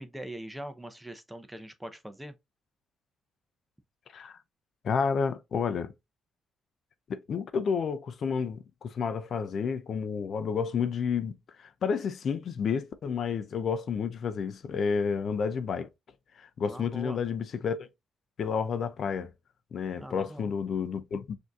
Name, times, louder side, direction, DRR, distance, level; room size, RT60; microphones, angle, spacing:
voice 1, 0.0-2.3 16.6-17.2 20.0-20.6, right 1 dB, 5° right, 0.7 m, -42 dB
voice 2, 4.8-5.9 7.1-15.9 16.4-17.9 18.4-19.3 19.7-21.4, left 6 dB, 55° left, 0.5 m, -30 dB
6.1 x 2.7 x 2.4 m
cardioid pair, 90°, 0 cm